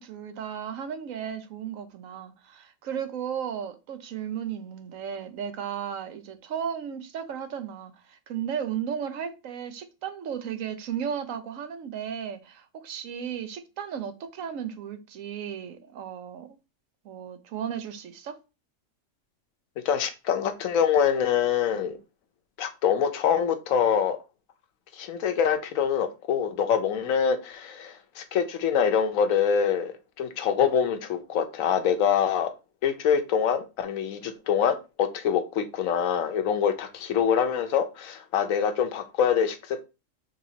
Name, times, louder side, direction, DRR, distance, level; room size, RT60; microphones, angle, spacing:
voice 1, 0.0-16.6 17.0-18.4, right 8 dB, 80° right, 1.1 m, -35 dB
voice 2, 19.8-22.0 22.6-24.2 24.9-32.5 32.8-39.8, left 7 dB, 80° left, 1.1 m, -25 dB
5.1 x 3.3 x 2.8 m
omnidirectional pair, 1.4 m